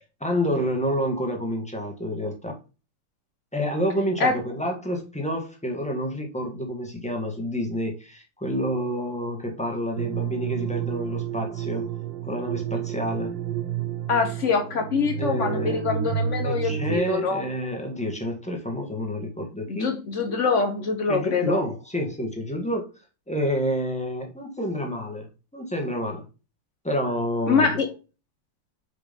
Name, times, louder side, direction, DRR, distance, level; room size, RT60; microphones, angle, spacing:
voice 1, 0.2-2.6 3.5-11.9 12.2-13.3 15.2-15.8 16.4-19.9 21.1-22.9 23.3-26.2 26.8-27.8, equal, 5° left, 1.3 m, -28 dB
Playground memories, 10.0-17.0, right 8 dB, 75° right, 1.5 m, -30 dB
voice 2, 14.1-17.5 19.7-21.6 27.5-27.9, left 4 dB, 45° left, 1.2 m, -24 dB
5.2 x 4.6 x 5.2 m
omnidirectional pair, 2.2 m